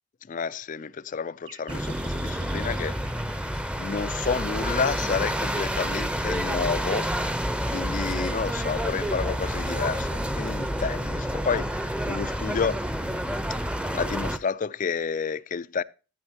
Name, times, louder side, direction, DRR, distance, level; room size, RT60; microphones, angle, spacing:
voice 1, 0.3-3.0 3.8-7.1 7.7-12.9 13.9-15.8, left 5 dB, 40° left, 0.4 m, -30 dB
sound 1, 1.4-3.6, right 4 dB, 80° right, 4.1 m, -47 dB
sound 2, 1.7-14.4, equal, 5° right, 0.7 m, -29 dB
14.0 x 8.8 x 2.9 m
head